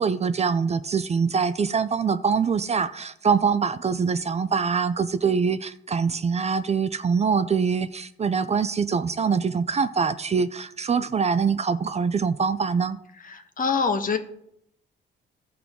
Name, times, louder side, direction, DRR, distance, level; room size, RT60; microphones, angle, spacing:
voice 1, 0.0-13.0, right 5 dB, 35° right, 0.5 m, -24 dB
voice 2, 13.3-14.2, left 5 dB, 45° left, 1.2 m, -24 dB
15.5 x 5.9 x 3.7 m
cardioid pair, 90°, 20 cm